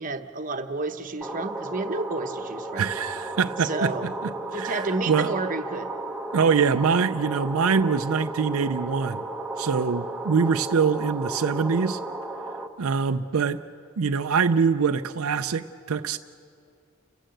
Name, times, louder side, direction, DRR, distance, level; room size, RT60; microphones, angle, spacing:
voice 1, 0.0-2.9 3.6-4.1 4.5-5.9, right 3 dB, 40° right, 7 dB, 1.0 m, -30 dB
sound 1, 1.2-12.7, right 2 dB, 5° right, 0.9 m, -34 dB
voice 2, 2.8-5.3 6.3-9.2 9.6-12.0 12.8-13.6 14.0-16.2, right 5 dB, 75° right, 8 dB, 0.5 m, -24 dB
30.0 x 15.5 x 7.8 m, 2.4 s
head